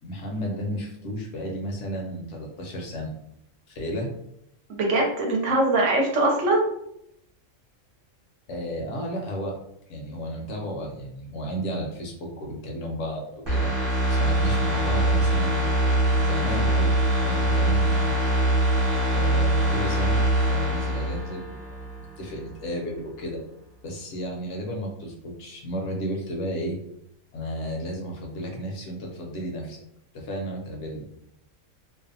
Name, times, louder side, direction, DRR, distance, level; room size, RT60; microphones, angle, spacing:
voice 1, 0.0-3.1 3.7-4.1 8.5-9.6 9.9-13.7 14.1-15.7 16.1-18.2 19.1-20.2 20.5-21.9 22.2-23.4 23.8-26.8 27.3-29.8 30.1-31.1, equal, 65° left, 0 dB, 0.9 m, -33 dB
voice 2, 4.7-6.6, right 2 dB, 70° right, 0 dB, 0.9 m, -22 dB
sound 1, 13.5-22.1 22.5-22.6, right 1 dB, 25° right, 0.6 m, -23 dB
2.6 x 2.2 x 2.6 m, 0.75 s
omnidirectional pair, 1.4 m